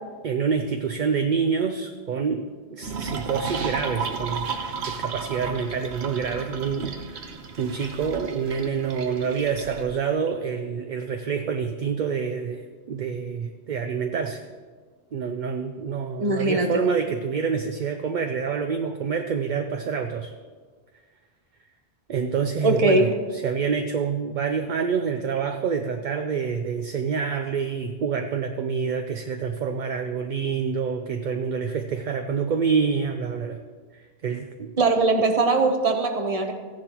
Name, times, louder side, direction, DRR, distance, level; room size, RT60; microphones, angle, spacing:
voice 1, 0.2-4.5 4.9-7.3 7.6-14.4 15.1-20.3 22.1-33.6 33.9-34.7, right 6 dB, 55° right, 6 dB, 0.6 m, -27 dB
sound 1, 2.8-9.8, right 5 dB, 90° right, 1.1 m, -33 dB
voice 2, 16.2-16.8 22.6-23.1 34.8-36.5, right 2 dB, 35° right, 4 dB, 0.9 m, -21 dB
15.0 x 10.5 x 3.0 m, 1.5 s
omnidirectional pair, 1.1 m